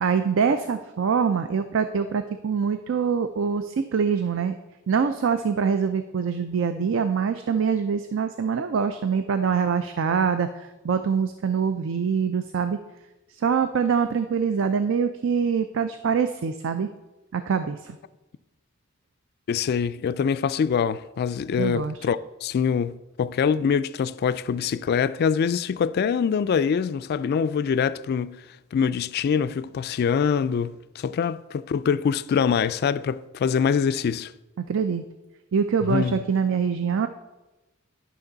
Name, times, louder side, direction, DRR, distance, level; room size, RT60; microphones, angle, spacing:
voice 1, 0.0-4.5 4.9-12.8 13.3-16.9 17.3-18.0 21.6-22.0 34.7-35.0 35.5-37.1, right 6 dB, 65° right, 0.4 m, -24 dB
voice 2, 19.5-28.4 28.7-34.3 35.8-36.2, left 6 dB, 50° left, 0.3 m, -24 dB
11.0 x 6.0 x 3.9 m
head